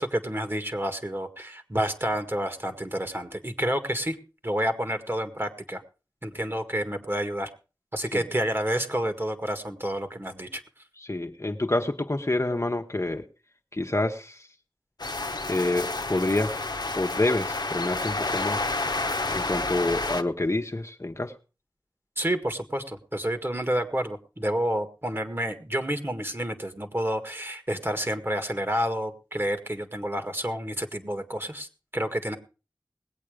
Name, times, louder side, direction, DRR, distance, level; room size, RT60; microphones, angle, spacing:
voice 1, 0.0-4.2 4.4-5.8 6.2-7.5 7.9-10.6 22.2-32.4, equal, 30° right, 7 dB, 1.9 m, -29 dB
voice 2, 11.0-13.3 13.7-14.5 15.5-16.6 16.9-18.6 19.3-21.3, left 2 dB, 40° left, 5 dB, 1.2 m, -27 dB
sound 1, 15.0-20.2, left 2 dB, 65° left, 1.0 m, -30 dB
19.5 x 8.5 x 5.0 m, 0.34 s
wide cardioid pair, 40°, 8 cm